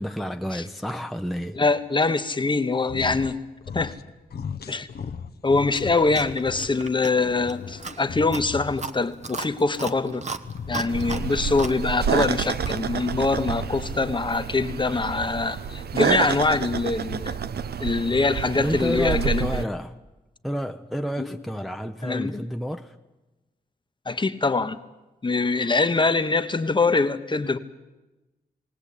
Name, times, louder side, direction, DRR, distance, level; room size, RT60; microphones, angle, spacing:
voice 1, 0.0-1.6 18.5-20.0 20.4-22.9, equal, ahead, 0.7 m, -30 dB
voice 2, 1.6-3.4 3.7-3.9 4.7-4.9 5.4-10.2 10.7-17.4 17.8-19.6 21.2-21.4 22.0-22.4 24.1-24.8 25.2-27.6, left 3 dB, 30° left, 1.0 m, -24 dB
sound 1, 2.8-3.4 3.6-4.0 4.3-6.7 7.1-9.0 10.4-11.8 13.2-14.3, left 6 dB, 80° left, 0.8 m, -37 dB
Chewing mastication, 5.7-12.9, right 4 dB, 45° right, 0.9 m, -37 dB
sound 2, 10.9-19.6, right 7 dB, 80° right, 0.6 m, -29 dB
19.5 x 18.5 x 8.5 m
wide cardioid pair, 100°, 16 cm